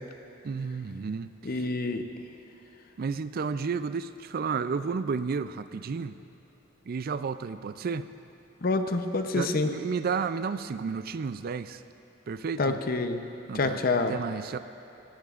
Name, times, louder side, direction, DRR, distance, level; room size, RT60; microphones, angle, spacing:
voice 1, 0.4-1.7 3.0-6.2 6.9-8.1 9.3-11.8 12.3-12.8 13.5-13.8 14.1-14.6, right 5 dB, 45° right, 13 dB, 0.4 m, -32 dB
voice 2, 1.4-2.1 8.6-9.7 12.6-13.3 13.5-14.1, left 3 dB, 45° left, 7 dB, 0.7 m, -27 dB
18.0 x 17.5 x 2.5 m, 2.8 s
head